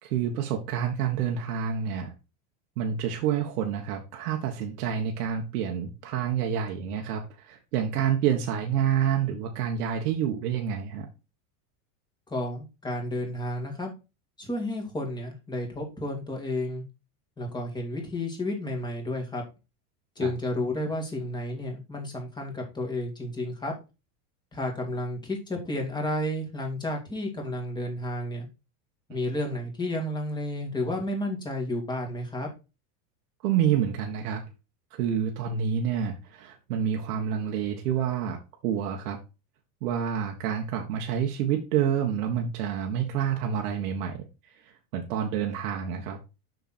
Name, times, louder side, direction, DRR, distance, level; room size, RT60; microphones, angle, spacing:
voice 1, 0.0-2.1 2.8-11.1 20.2-20.3 33.4-34.4 34.9-38.4 38.6-39.2 39.8-44.3 44.9-46.2, right 8 dB, 85° right, 2 dB, 1.7 m, -28 dB
voice 2, 12.3-13.9 14.4-16.8 17.4-19.4 20.2-23.7 24.5-28.5 29.1-32.5, left 1 dB, 10° left, 1 dB, 2.1 m, -31 dB
6.8 x 5.9 x 4.3 m, 0.29 s
supercardioid pair, 160°, 45 cm